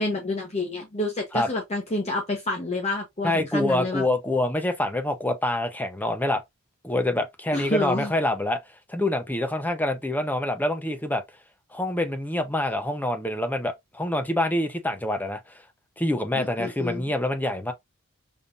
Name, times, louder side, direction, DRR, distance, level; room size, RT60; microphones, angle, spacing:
voice 1, 0.0-4.0 7.5-8.1 16.3-17.0, left 2 dB, 30° left, 1.0 m, -28 dB
voice 2, 3.2-6.4 6.8-8.6 8.9-11.2 11.7-15.4 16.0-17.7, left 1 dB, 10° left, 0.7 m, -26 dB
5.4 x 3.2 x 2.6 m
head